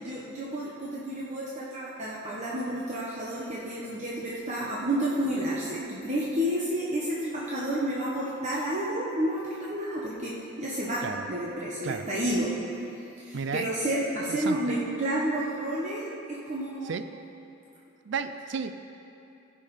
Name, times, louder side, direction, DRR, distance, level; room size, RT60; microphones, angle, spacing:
voice 1, 0.0-11.0 11.3-12.5 13.2-16.1 16.5-16.9, right 1 dB, 35° right, -6 dB, 1.0 m, -30 dB
voice 2, 13.3-13.7 14.3-14.6 16.8-17.0 18.1-18.7, right 5 dB, 60° right, 10 dB, 0.4 m, -32 dB
16.0 x 5.5 x 4.8 m, 2.9 s
head